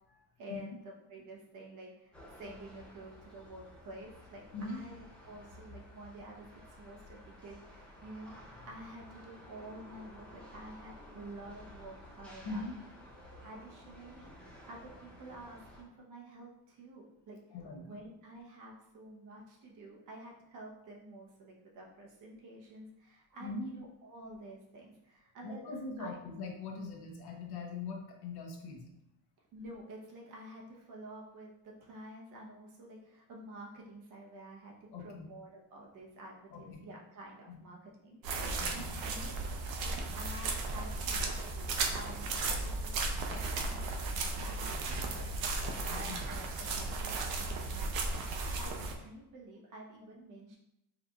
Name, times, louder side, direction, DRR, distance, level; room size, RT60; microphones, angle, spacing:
voice 1, 0.4-12.6 13.4-14.3 14.6-17.4 17.8-25.6 26.0-26.1 29.5-39.4 39.8-42.9 43.3-48.1 48.4-50.6, right 1 dB, 55° right, -2 dB, 1.0 m, -50 dB
sound 1, 2.1-15.8, left 1 dB, 5° left, 0.6 m, -54 dB
voice 2, 4.5-4.8 8.6-8.7 12.4-12.7 17.5-18.0 23.4-23.7 25.4-28.9 34.9-35.3 36.5-36.8 37.5-37.6 38.5-38.9 45.6-46.2, left 3 dB, 85° left, 1 dB, 0.9 m, -42 dB
sound 2, 38.2-48.9, right 3 dB, 70° right, 0.6 m, -35 dB
4.8 x 3.0 x 2.4 m, 0.81 s
cardioid pair, 170°, 37 cm